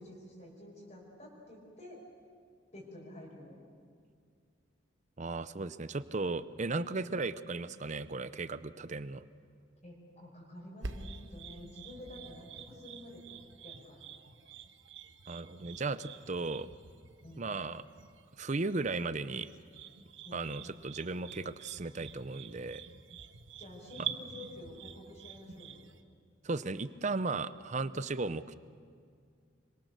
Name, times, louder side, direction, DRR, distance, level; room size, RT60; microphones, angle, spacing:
voice 1, 0.0-2.0 2.7-3.6 6.7-7.0 9.8-13.2 13.6-14.0 17.2-17.5 20.2-20.4 23.6-25.8, left 1 dB, 40° left, -3 dB, 5.5 m, -50 dB
voice 2, 5.2-9.2 15.3-16.7 17.4-17.8 18.4-19.5 20.3-22.8 24.0-24.1 26.4-28.5, right 3 dB, 40° right, 14 dB, 0.7 m, -36 dB
sound 1, 10.8-26.0, right 6 dB, 75° right, 1.2 m, -47 dB
26.5 x 25.0 x 6.7 m, 2.1 s
head